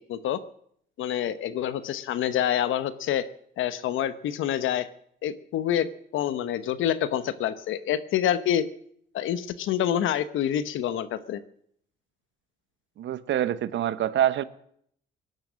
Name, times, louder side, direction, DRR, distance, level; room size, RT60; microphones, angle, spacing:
voice 1, 0.1-0.4 1.0-3.3 3.6-4.9 5.2-5.9 6.1-8.6 9.1-11.4, left 10 dB, 80° left, 14 dB, 1.0 m, -27 dB
voice 2, 13.0-14.4, right 11 dB, 70° right, 15 dB, 0.9 m, -25 dB
18.5 x 11.0 x 6.3 m, 0.67 s
cardioid pair, 90°, 20 cm